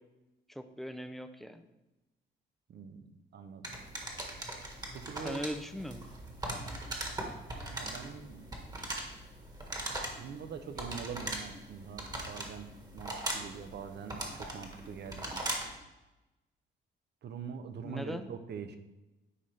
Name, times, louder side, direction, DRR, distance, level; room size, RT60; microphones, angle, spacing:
voice 1, 0.5-1.7 5.2-6.0 17.8-18.3, equal, ahead, 9 dB, 0.5 m, -39 dB
voice 2, 2.7-3.7 4.9-5.5 7.7-8.6 10.1-15.4 17.2-18.8, right 6 dB, 60° right, 8 dB, 0.8 m, -44 dB
sound 1, 3.6-15.8, right 1 dB, 20° right, 1.4 m, -40 dB
9.7 x 4.1 x 3.3 m, 1.0 s
cardioid pair, 90°, 20 cm